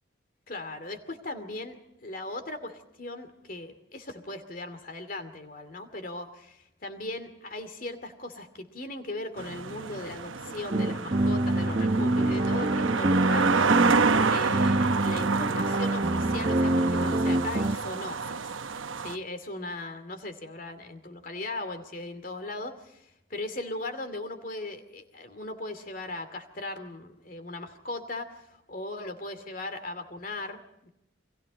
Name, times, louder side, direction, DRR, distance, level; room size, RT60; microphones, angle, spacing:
voice 1, 0.5-1.8 2.0-13.7 14.3-18.4 19.0-30.9, left 2 dB, 45° left, 9 dB, 2.6 m, -38 dB
sound 1, 9.4-19.2, right 5 dB, 80° right, 1.0 m, -29 dB
sound 2, 10.7-17.8, right 1 dB, 35° right, 0.8 m, -26 dB
30.0 x 23.0 x 4.2 m, 0.84 s
head